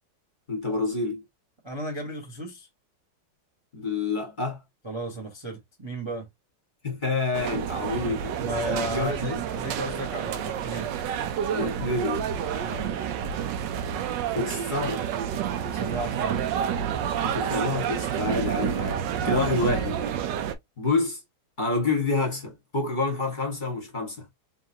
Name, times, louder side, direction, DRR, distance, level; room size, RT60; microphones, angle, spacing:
voice 1, 0.5-1.2 3.7-4.6 6.8-8.4 8.9-9.4 11.5-12.2 14.3-15.1 17.2-20.3 20.8-21.2 21.6-24.3, left 3 dB, 25° left, 1.4 m, -28 dB
voice 2, 1.6-2.7 4.8-6.3 8.4-11.0 12.6-13.0 15.7-16.4, right 1 dB, 20° right, 0.7 m, -34 dB
sound 1, 7.3-20.5, right 8 dB, 70° right, 1.2 m, -29 dB
3.9 x 3.6 x 2.7 m
omnidirectional pair, 2.3 m